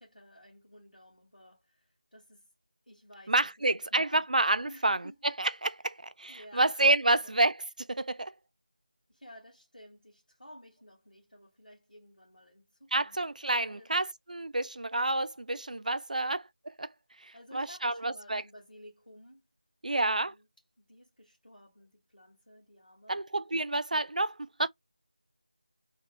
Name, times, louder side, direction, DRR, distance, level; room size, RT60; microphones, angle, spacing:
voice 1, 0.0-2.5 2.9-4.3 4.6-5.2 6.3-6.8 7.1-7.3 9.1-13.2 13.7-13.9 16.1-16.4 17.3-19.5 19.9-20.5 20.8-23.2, equal, 90° left, 1.9 m, -54 dB
voice 2, 3.3-5.0 5.4-7.5 7.9-8.3 12.9-16.4 16.8-16.9 17.2-18.4 19.8-20.3 23.1-24.7, right 2 dB, 70° right, 0.3 m, -29 dB
3.2 x 2.7 x 2.9 m
figure-of-eight pair, 170°, 4 cm